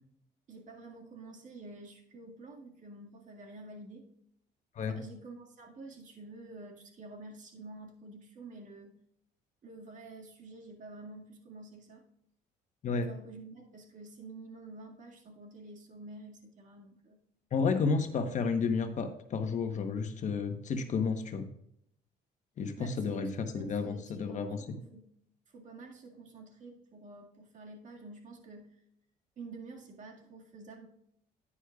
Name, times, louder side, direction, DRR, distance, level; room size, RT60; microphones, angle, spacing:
voice 1, 0.5-4.1 4.8-8.9 9.6-12.0 12.9-17.2 22.8-25.1 25.5-28.8 29.4-30.9, right 2 dB, 50° right, 1 dB, 2.0 m, -49 dB
voice 2, 17.5-21.5 22.6-24.7, left 5 dB, 45° left, 6 dB, 1.1 m, -31 dB
9.8 x 9.8 x 2.4 m, 0.71 s
cardioid pair, 110°, 17 cm